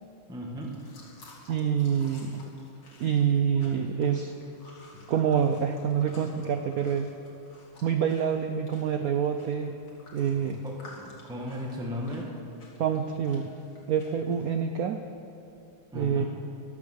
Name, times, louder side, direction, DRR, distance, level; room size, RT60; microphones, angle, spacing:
voice 1, 0.3-0.8 4.9-5.1 10.6-12.3 15.9-16.2, left 1 dB, ahead, -1 dB, 1.3 m, -36 dB
sound 1, 0.6-14.6, left 2 dB, 60° left, 2.7 m, -54 dB
voice 2, 1.5-2.4 3.0-4.3 5.1-7.1 7.8-9.8 10.1-10.6 12.8-13.5 13.9-15.0 15.9-16.2, right 8 dB, 75° right, 7 dB, 0.8 m, -26 dB
13.5 x 12.0 x 6.4 m, 2.7 s
omnidirectional pair, 2.2 m